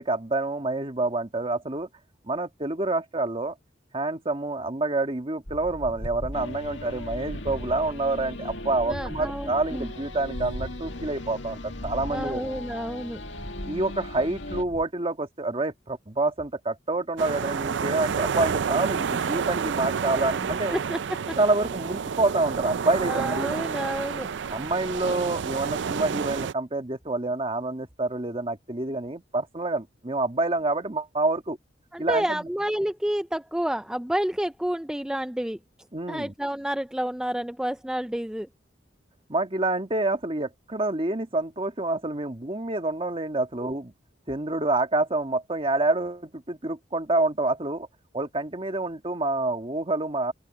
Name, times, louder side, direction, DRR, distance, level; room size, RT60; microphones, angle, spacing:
voice 1, 0.0-1.9 2.2-3.5 3.9-12.4 13.6-20.8 21.4-23.5 24.5-31.6 32.0-32.5 35.9-36.3 39.3-43.9 44.3-47.9 48.1-50.3, right 2 dB, 30° right, 1.7 m, -27 dB
sound 1, 5.5-14.8, equal, 50° left, 7.8 m, -39 dB
sound 2, 6.3-14.6, left 2 dB, 80° left, 2.0 m, -39 dB
voice 2, 8.9-9.9 12.1-13.2 20.4-21.0 21.3-21.4 23.1-24.3 31.9-35.6 36.1-38.5 43.6-43.7, right 1 dB, 5° right, 0.4 m, -30 dB
sound 3, 17.2-26.5, right 6 dB, 70° right, 0.4 m, -29 dB
open air
head